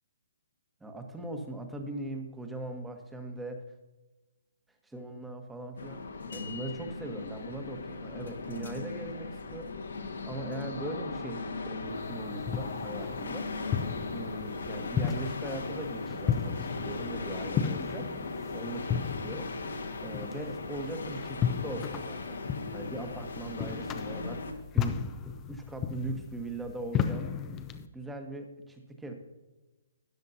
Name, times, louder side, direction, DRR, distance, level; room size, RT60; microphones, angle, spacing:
voice 1, 0.8-3.6 4.8-6.0 6.3-9.7 10.2-13.5 14.1-18.0 18.5-19.5 20.0-22.4 22.7-25.0 25.2-27.3 27.9-29.1, right 2 dB, 5° right, 4 dB, 1.1 m, -40 dB
sound 1, 5.8-24.5, left 3 dB, 80° left, 1.5 m, -38 dB
sound 2, 12.0-27.9, left 8 dB, 20° left, 0.5 m, -35 dB
13.5 x 9.5 x 2.7 m, 1.1 s
hypercardioid pair, 145°, 0 cm